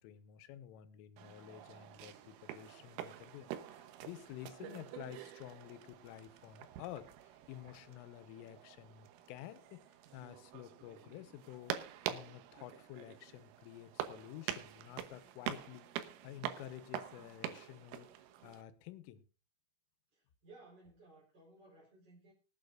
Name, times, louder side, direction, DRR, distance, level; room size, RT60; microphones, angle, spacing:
voice 1, 0.0-11.8 12.1-18.1 18.4-19.2, left 12 dB, 85° left, 12 dB, 3.5 m, -51 dB
sound 1, 1.2-18.6, right 11 dB, 85° right, 3.6 m, -46 dB
voice 2, 20.1-22.3, right 2 dB, 25° right, -5 dB, 4.1 m, -60 dB
24.5 x 8.8 x 2.5 m, 0.34 s
omnidirectional pair, 5.7 m